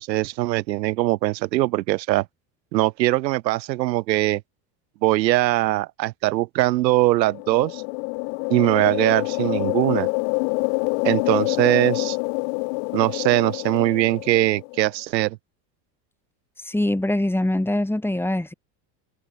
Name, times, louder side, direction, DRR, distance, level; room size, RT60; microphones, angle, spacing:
voice 1, 0.0-2.3 2.7-4.4 5.0-7.8 8.5-10.1 11.0-12.2 12.9-15.4, right 17 dB, 90° right, 4.5 m, -21 dB
sound 1, 7.1-14.8, left 40 dB or more, 70° left, 3.6 m, -26 dB
voice 2, 16.6-18.5, left 1 dB, 5° left, 5.8 m, -23 dB
supercardioid pair, 115°, 49 cm